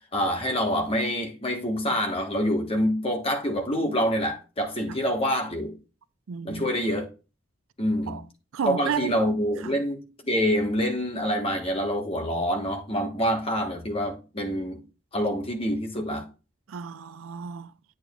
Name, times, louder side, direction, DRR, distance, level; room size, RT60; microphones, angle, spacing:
voice 1, 0.1-5.7 6.4-7.1 7.8-8.2 8.6-10.0 10.2-14.8 15.1-16.2, equal, 25° left, 1.3 m, -26 dB
voice 2, 6.3-6.6 8.1-8.2 8.5-9.2 9.6-9.8 16.7-17.7, right 7 dB, 70° right, 0.4 m, -32 dB
8.8 x 6.8 x 2.4 m
head